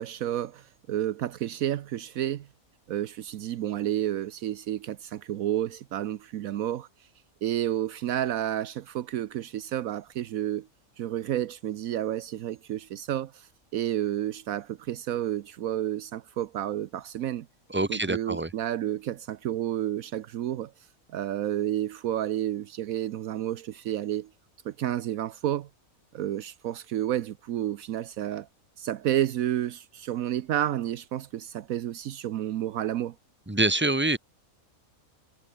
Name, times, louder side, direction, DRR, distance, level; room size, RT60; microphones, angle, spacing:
voice 1, 0.0-2.5 2.9-6.9 7.4-10.7 11.0-17.5 17.9-20.7 21.1-24.3 24.6-25.7 26.1-28.5 28.8-33.1, right 12 dB, 75° right, 1.1 m, -30 dB
voice 2, 17.7-18.5 33.5-34.2, right 2 dB, 10° right, 1.8 m, -25 dB
omnidirectional pair, 1.5 m